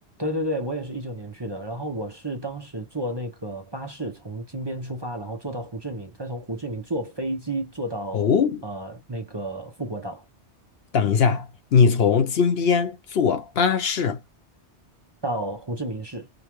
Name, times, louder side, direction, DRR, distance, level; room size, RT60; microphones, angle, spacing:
voice 1, 0.2-8.3 8.6-10.2 15.2-16.3, right 1 dB, 25° right, 0.8 m, -31 dB
voice 2, 8.1-8.6 10.9-14.2, left 6 dB, 65° left, 0.9 m, -21 dB
5.1 x 2.4 x 3.0 m
omnidirectional pair, 1.2 m